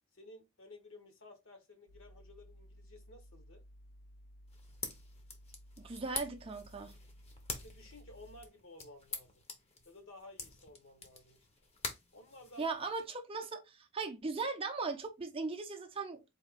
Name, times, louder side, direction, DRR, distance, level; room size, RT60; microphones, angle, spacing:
voice 1, 0.1-3.6 7.5-9.4 9.8-11.5 12.1-12.7, left 2 dB, 60° left, 1.1 m, -55 dB
sound 1, 1.9-8.5, equal, 90° left, 0.6 m, -57 dB
sound 2, 4.5-13.1, left 3 dB, 30° left, 0.7 m, -46 dB
voice 2, 5.8-6.9 12.6-16.2, right 4 dB, 25° right, 0.5 m, -38 dB
4.2 x 2.8 x 3.5 m
head